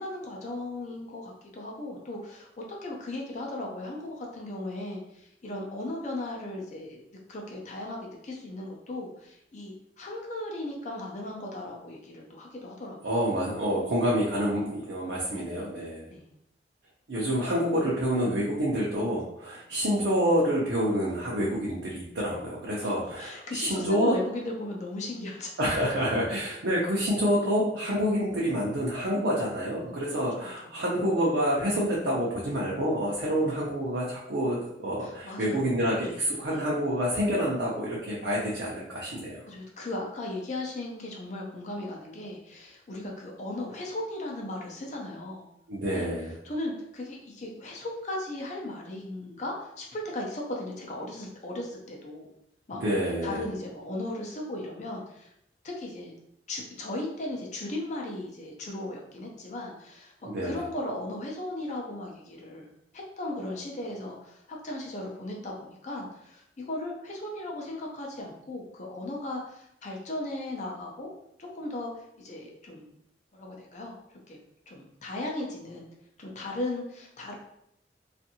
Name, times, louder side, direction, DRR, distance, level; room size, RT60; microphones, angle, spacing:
voice 1, 0.0-7.0 7.3-13.0 15.3-15.7 16.1-16.3 22.8-22.9 23.2-25.5 30.6-30.7 35.0-36.2 36.5-36.7 39.5-45.5 45.9-52.3 52.7-52.8 53.2-55.3 55.6-56.1 56.5-60.1 60.4-62.7 62.9-71.1 71.4-72.9 73.3-74.0 74.3-74.4 74.7-75.9 76.2-77.3, left 1 dB, 40° left, -1 dB, 0.5 m, -37 dB
voice 2, 13.0-16.1 17.1-24.1 25.6-39.4 45.7-46.3 52.8-53.4 60.3-60.6, equal, 75° right, -5 dB, 0.6 m, -27 dB
2.6 x 2.5 x 2.7 m, 0.77 s
head